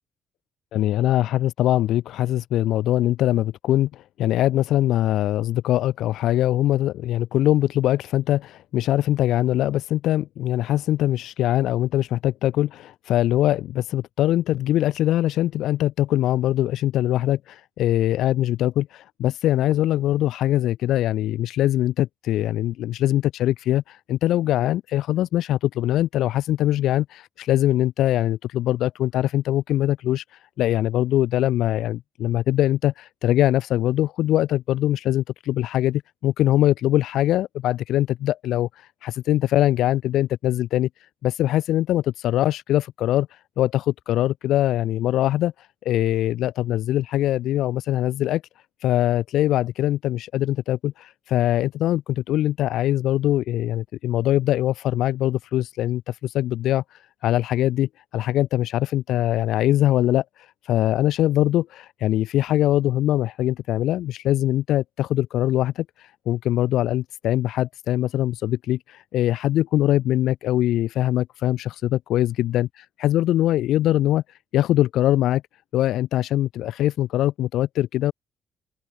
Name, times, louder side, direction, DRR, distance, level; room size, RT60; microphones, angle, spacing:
voice 1, 0.7-30.2 30.6-38.7 39.0-40.9 41.2-43.3 43.6-45.5 45.8-48.4 48.8-56.8 57.2-60.2 60.7-65.8 66.3-72.7 73.0-74.2 74.5-75.4 75.7-78.1, left 13 dB, 85° left, 2.5 m, -22 dB
open air
cardioid pair, 90°, 0 cm